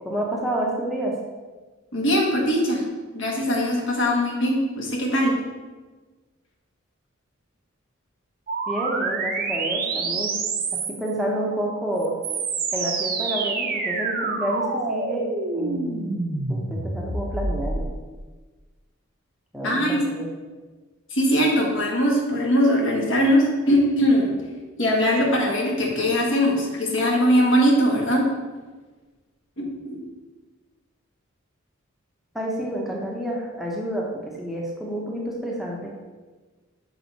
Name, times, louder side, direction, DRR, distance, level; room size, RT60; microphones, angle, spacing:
voice 1, 0.0-1.1 8.7-10.3 10.9-12.1 12.7-15.3 15.5-16.2 16.5-17.9 19.5-20.3 32.3-34.1 34.4-35.9, right 1 dB, ahead, -3 dB, 0.8 m, -29 dB
voice 2, 1.9-2.8 3.1-5.4 19.6-20.0 21.1-24.3 24.8-28.3 29.6-30.0, equal, 65° left, -1 dB, 1.4 m, -21 dB
sound 1, 8.5-11.1 12.0-17.9, right 3 dB, 45° right, 0.7 m, -27 dB
6.2 x 4.7 x 4.1 m, 1.3 s
head